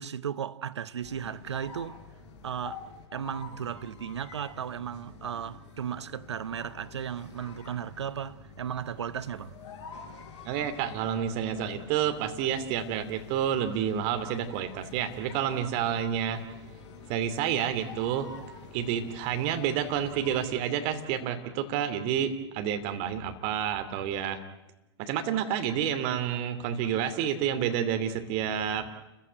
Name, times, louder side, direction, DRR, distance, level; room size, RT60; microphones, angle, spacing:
voice 1, 0.0-2.0 2.4-9.5, right 8 dB, 75° right, 0.9 m, -35 dB
sound 1, 1.0-20.7, left 4 dB, 35° left, 5.6 m, -47 dB
voice 2, 10.4-16.4 17.1-18.3 18.7-24.4 25.0-28.9, right 9 dB, 45° right, 2.7 m, -29 dB
29.5 x 15.5 x 9.3 m
figure-of-eight pair, 100°, 15 cm